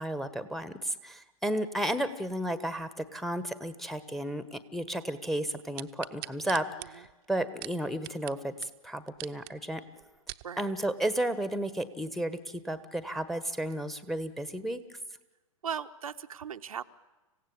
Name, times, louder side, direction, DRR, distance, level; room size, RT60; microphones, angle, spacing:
voice 1, 0.0-9.8 10.6-14.8, right 1 dB, ahead, 13 dB, 1.2 m, -33 dB
sound 1, 5.8-8.4 8.6-8.7 9.1-9.5 10.0-10.5 11.1-11.2, right 21 dB, 45° right, 0.8 m, -42 dB
voice 2, 10.4-10.7 15.6-16.8, right 8 dB, 75° right, 8 dB, 0.9 m, -38 dB
26.5 x 16.0 x 8.5 m, 1.1 s
hypercardioid pair, 110°, 18 cm